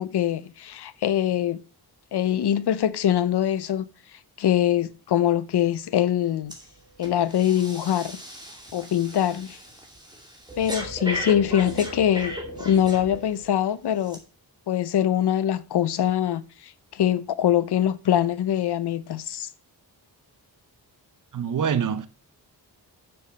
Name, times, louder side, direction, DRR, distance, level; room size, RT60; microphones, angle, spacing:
voice 1, 0.0-1.6 2.1-3.9 4.4-6.5 7.0-8.2 8.7-9.6 10.6-14.2 14.7-19.5, left 10 dB, 75° left, 0.8 m, -23 dB
Breathing, 6.5-6.7 7.0-13.5 14.0-14.2, equal, 10° right, 2.4 m, -36 dB
voice 2, 21.3-22.1, right 7 dB, 50° right, 0.8 m, -25 dB
7.0 x 6.9 x 5.5 m
wide cardioid pair, 135°, 40 cm